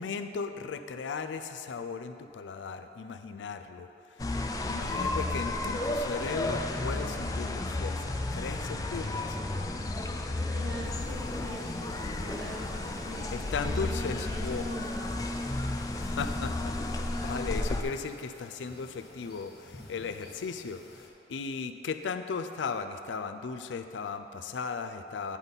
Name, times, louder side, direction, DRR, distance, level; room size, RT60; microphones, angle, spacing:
voice 1, 0.0-4.3 4.7-9.4 13.3-14.7 15.9-25.4, left 5 dB, 90° left, 9 dB, 0.4 m, -37 dB
sound 1, 4.2-17.8, left 2 dB, 20° left, 0.3 m, -33 dB
voice 2, 10.5-15.3, right 1 dB, 65° right, -5 dB, 1.6 m, -43 dB
sound 2, 10.8-21.1, left 1 dB, 60° left, 0.9 m, -53 dB
9.8 x 4.0 x 5.3 m, 2.7 s
head